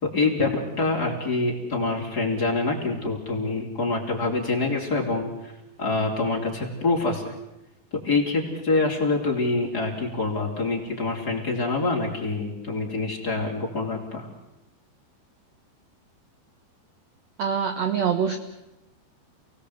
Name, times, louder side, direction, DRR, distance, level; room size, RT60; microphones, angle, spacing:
voice 1, 0.0-5.5 5.8-7.3 8.0-14.3, left 3 dB, 25° left, 0 dB, 3.6 m, -26 dB
voice 2, 17.4-18.4, right 7 dB, 70° right, 7 dB, 1.6 m, -24 dB
28.5 x 19.5 x 8.2 m, 0.94 s
omnidirectional pair, 5.0 m